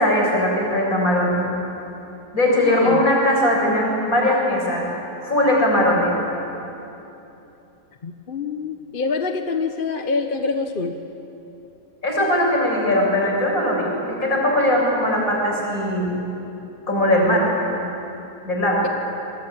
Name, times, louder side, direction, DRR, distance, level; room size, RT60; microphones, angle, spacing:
voice 1, 0.0-1.5 2.3-4.9 5.2-6.2 12.0-13.9 14.2-16.1 16.9-17.7 18.4-18.9, left 1 dB, 55° left, -2 dB, 7.2 m, -19 dB
voice 2, 2.6-3.0 8.0-11.0, left 4 dB, 35° left, 6 dB, 1.1 m, -26 dB
27.0 x 22.0 x 8.8 m, 3.0 s
omnidirectional pair, 1.7 m